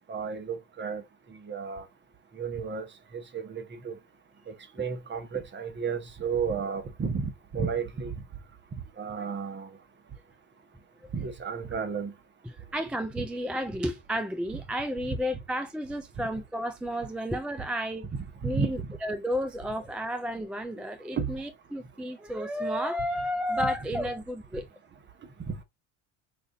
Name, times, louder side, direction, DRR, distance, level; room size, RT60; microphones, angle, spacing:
voice 1, 0.1-1.0 1.3-1.9 2.3-4.0 4.5-8.1 9.0-9.7 11.1-12.1 13.2-13.3 18.1-18.9 20.8-20.9 21.2-21.3 23.6-23.7 25.5-25.6, right 5 dB, 25° right, 1.0 m, -33 dB
voice 2, 12.4-18.1 18.4-24.7, equal, 5° right, 0.3 m, -32 dB
5.1 x 2.5 x 2.6 m
supercardioid pair, 80°, 40 cm